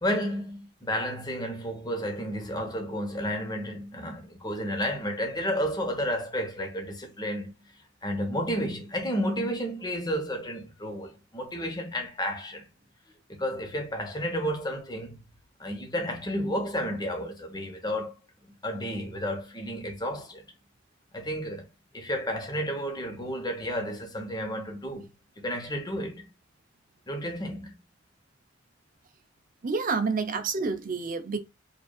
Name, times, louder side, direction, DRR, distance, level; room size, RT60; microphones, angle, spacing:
voice 1, 0.0-7.5 8.0-12.7 13.3-15.3 15.6-18.1 18.6-20.5 21.1-21.7 21.9-25.1 25.4-26.3 27.1-27.8, equal, 20° left, 1.0 m, -31 dB
voice 2, 29.6-31.4, right 4 dB, 45° right, 0.6 m, -28 dB
5.1 x 2.6 x 2.4 m
head